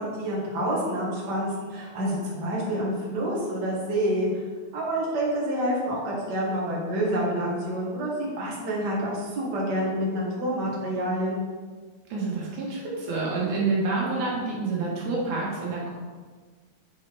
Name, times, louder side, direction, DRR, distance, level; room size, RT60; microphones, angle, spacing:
voice 1, 0.0-4.5 4.7-11.4, right 1 dB, 40° right, -5 dB, 2.1 m, -28 dB
voice 2, 12.1-15.9, right 3 dB, 85° right, -4 dB, 3.0 m, -28 dB
8.5 x 4.4 x 4.8 m, 1.4 s
omnidirectional pair, 3.4 m